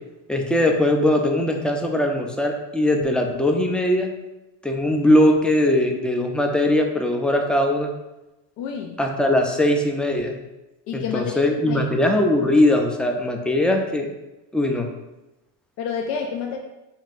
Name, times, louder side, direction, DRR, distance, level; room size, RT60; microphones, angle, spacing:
voice 1, 0.3-4.1 4.6-7.9 9.0-10.4 10.9-14.1 14.5-14.9, left 1 dB, ahead, 2 dB, 0.3 m, -20 dB
voice 2, 8.6-9.0 10.9-11.9 15.8-16.6, left 6 dB, 80° left, 2 dB, 0.6 m, -29 dB
5.5 x 2.6 x 2.4 m, 1.0 s
supercardioid pair, 95°, 41 cm